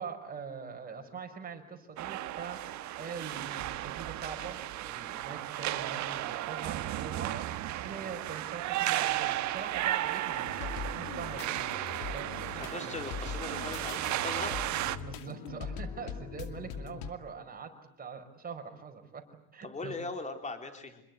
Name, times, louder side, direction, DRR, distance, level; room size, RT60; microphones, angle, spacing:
voice 1, 0.0-11.6 12.1-12.7 14.9-19.2 19.5-19.9, right 5 dB, 20° right, 5 dB, 5.0 m, -43 dB
sound 1, 2.0-15.0, right 14 dB, 40° right, 1.4 m, -34 dB
sound 2, 10.3-17.1, left 6 dB, 50° left, 2.6 m, -41 dB
voice 2, 12.6-14.5 19.6-21.0, left 3 dB, 15° left, 6 dB, 4.1 m, -39 dB
27.5 x 21.5 x 9.5 m, 0.77 s
supercardioid pair, 120°, 45 cm